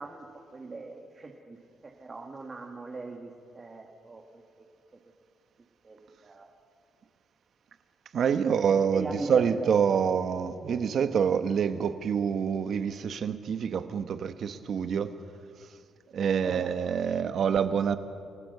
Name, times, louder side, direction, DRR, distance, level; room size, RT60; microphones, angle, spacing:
voice 1, 0.0-1.6 1.8-4.4 5.8-6.5 8.9-10.2 16.4-17.0, right 3 dB, 30° right, 1.9 m, -40 dB
voice 2, 8.1-15.1 16.1-18.0, right 7 dB, 60° right, 1.2 m, -26 dB
28.0 x 15.5 x 6.8 m
cardioid pair, 90°, 0 cm